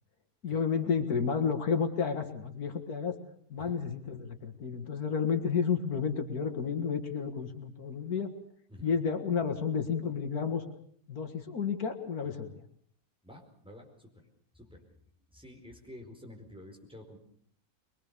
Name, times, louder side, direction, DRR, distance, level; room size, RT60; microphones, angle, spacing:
voice 1, 0.4-3.2 3.5-8.3 8.8-10.6 11.1-12.6, left 6 dB, 80° left, 6 dB, 2.4 m, -31 dB
voice 2, 13.2-14.1 14.5-14.8 15.3-17.2, left 1 dB, 5° right, 1 dB, 4.7 m, -50 dB
24.0 x 22.5 x 6.8 m, 0.63 s
omnidirectional pair, 1.6 m